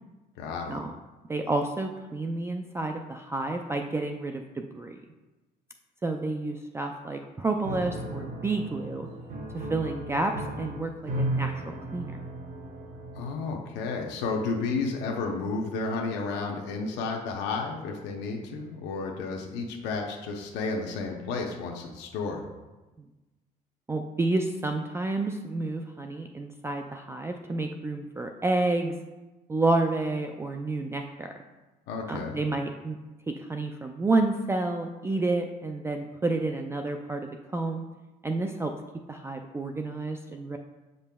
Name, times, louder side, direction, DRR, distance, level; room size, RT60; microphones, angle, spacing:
voice 1, 0.4-0.8 13.1-22.4 31.9-32.4, left 4 dB, 90° left, 1 dB, 0.7 m, -32 dB
voice 2, 1.3-5.0 6.0-9.1 9.5-11.6 11.9-12.1 23.9-28.9 29.5-31.3 32.1-33.0 33.3-37.9 38.2-38.7 39.1-40.6, right 2 dB, 15° right, 4 dB, 0.3 m, -30 dB
Piano, 7.6-13.6, right 1 dB, 50° right, 1.3 m, -35 dB
8.1 x 5.3 x 2.2 m, 1.1 s
cardioid pair, 110°, 17 cm